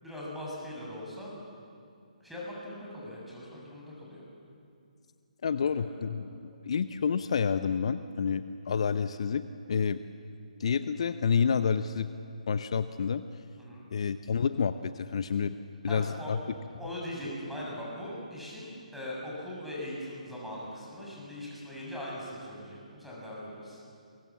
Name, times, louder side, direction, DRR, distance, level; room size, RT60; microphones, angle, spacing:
voice 1, 0.0-1.3 2.2-4.2 5.6-6.0 6.4-6.6 13.6-13.9 15.8-16.3 16.8-23.8, left 1 dB, ahead, -5 dB, 7.4 m, -40 dB
voice 2, 5.4-10.0 10.6-12.1 12.5-13.2 13.9-15.6 15.8-16.4, left 6 dB, 50° left, 11 dB, 0.8 m, -29 dB
29.0 x 23.0 x 7.4 m, 2.4 s
figure-of-eight pair, 140°, 4 cm